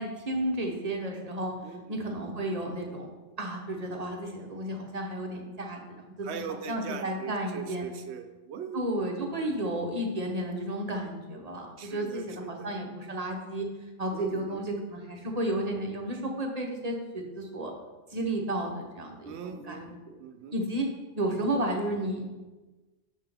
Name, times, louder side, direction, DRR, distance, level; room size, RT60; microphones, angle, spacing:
voice 1, 0.0-1.5 1.9-3.1 3.4-5.8 6.2-6.3 6.7-7.9 8.7-13.7 14.0-17.7 18.1-19.8 20.0-20.1 20.5-20.9 21.2-22.2, right 1 dB, 35° right, 1 dB, 0.9 m, -32 dB
voice 2, 6.2-8.8 9.3-9.6 11.8-12.7 14.1-14.6 19.2-20.5, right 6 dB, 70° right, 8 dB, 0.9 m, -40 dB
6.4 x 5.9 x 3.4 m, 1.2 s
omnidirectional pair, 1.2 m